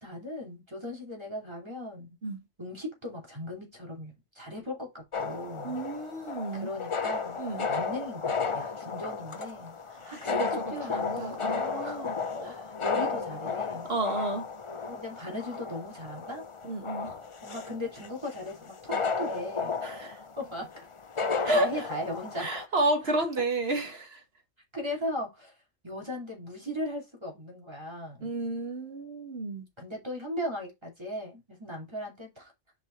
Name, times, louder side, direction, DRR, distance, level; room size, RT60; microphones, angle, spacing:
voice 1, 0.0-2.2 2.6-5.8 6.5-7.4 7.7-9.8 10.1-10.4 10.7-11.4 11.8-12.0 12.3-13.9 14.8-16.4 17.0-20.7 21.3-22.5 24.7-25.5 25.8-28.3 29.8-32.5, left 1 dB, 20° right, 2.8 m, -38 dB
sound 1, 5.1-22.7, left 5 dB, 35° left, 0.5 m, -34 dB
voice 2, 5.6-6.7 7.4-7.7 10.0-10.5 10.8-12.2 12.4-12.6 13.9-14.4 16.6-17.1 19.8-20.2 21.4-21.9 22.4-24.2 28.2-29.7, right 2 dB, 55° right, 2.0 m, -31 dB
6.4 x 5.4 x 3.1 m
omnidirectional pair, 1.3 m